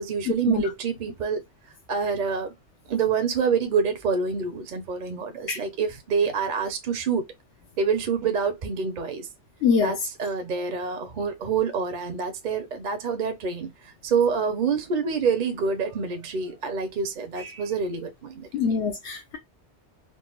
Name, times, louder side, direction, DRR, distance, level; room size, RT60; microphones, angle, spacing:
voice 1, 0.0-1.4 1.9-2.5 2.9-7.3 7.8-9.3 9.8-13.7 14.0-18.7, right 5 dB, 50° right, 0.7 m, -27 dB
voice 2, 9.6-9.9 18.5-19.4, left 5 dB, 70° left, 0.9 m, -24 dB
3.9 x 2.2 x 2.2 m
omnidirectional pair, 1.2 m